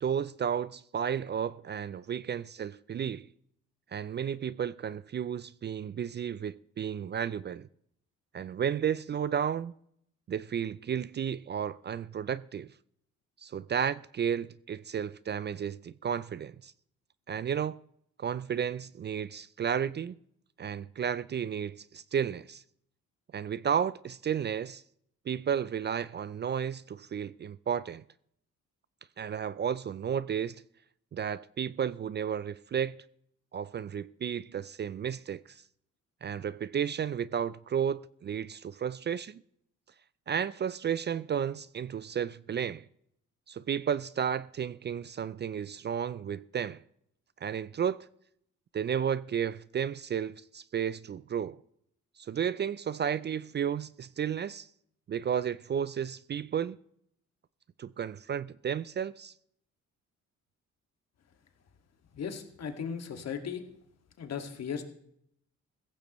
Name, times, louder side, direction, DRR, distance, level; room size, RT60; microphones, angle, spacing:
voice 1, 0.0-3.3 3.9-7.7 8.3-9.7 10.3-12.7 13.4-16.7 17.3-17.8 18.2-20.2 20.6-22.6 23.3-24.8 25.3-28.0 29.2-30.6 31.1-32.9 33.5-35.6 36.2-39.4 40.3-42.8 43.5-46.8 47.4-48.0 48.7-51.6 52.2-54.7 55.1-56.8 57.8-59.3, right 8 dB, 35° right, 0.4 m, -33 dB
voice 2, 62.1-63.6 64.2-64.8, left 7 dB, 60° left, 2.0 m, -36 dB
16.0 x 14.5 x 3.1 m
cardioid pair, 90°, 30 cm